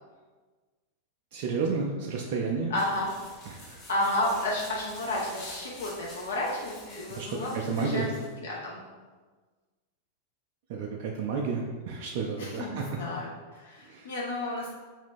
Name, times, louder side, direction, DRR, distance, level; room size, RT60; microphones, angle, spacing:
voice 1, 1.3-2.7 3.5-3.8 7.1-8.1 10.7-12.8 13.9-14.1, right 4 dB, 50° right, 0 dB, 0.3 m, -31 dB
voice 2, 2.7-3.1 3.9-8.8 12.4-14.7, left 1 dB, 65° left, -3 dB, 0.5 m, -32 dB
sound 1, 2.7-8.3, left 1 dB, 30° left, 0.9 m, -48 dB
2.8 x 2.5 x 3.4 m, 1.4 s
figure-of-eight pair, 90°, 0 cm